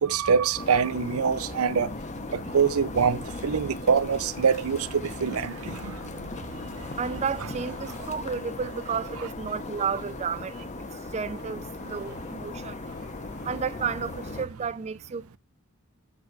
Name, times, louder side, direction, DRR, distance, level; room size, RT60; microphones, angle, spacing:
voice 1, 0.0-1.9 2.3-6.0, right 6 dB, 85° right, 0.6 m, -24 dB
sound 1, 0.5-14.4, left 2 dB, 35° left, 0.8 m, -38 dB
voice 2, 6.6-12.9 13.4-15.4, right 6 dB, 30° right, 0.4 m, -32 dB
8.6 x 4.6 x 4.5 m
head